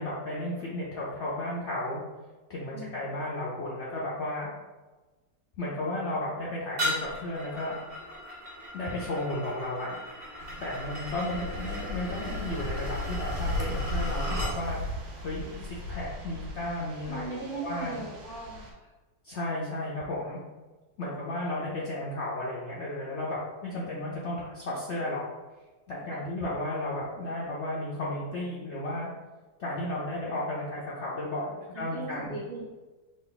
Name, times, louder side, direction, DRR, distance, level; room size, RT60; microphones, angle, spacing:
voice 1, 0.0-2.0 2.5-4.5 5.6-7.8 8.7-10.0 10.6-15.4 15.7-17.4 17.6-18.1 19.2-20.4 21.0-25.2 25.9-29.1 29.6-32.3, left 1 dB, 90° left, -6 dB, 0.6 m, -33 dB
voice 2, 2.7-3.1 15.4-15.7 17.1-18.9 21.1-21.2 26.1-26.2 31.7-32.6, right 3 dB, 55° right, -7 dB, 0.5 m, -39 dB
sound 1, 6.8-14.6, equal, 40° right, 1.1 m, -36 dB
sound 2, 10.4-18.7, left 1 dB, 90° right, 1.5 m, -37 dB
3.8 x 2.4 x 3.8 m, 1.2 s
omnidirectional pair, 2.0 m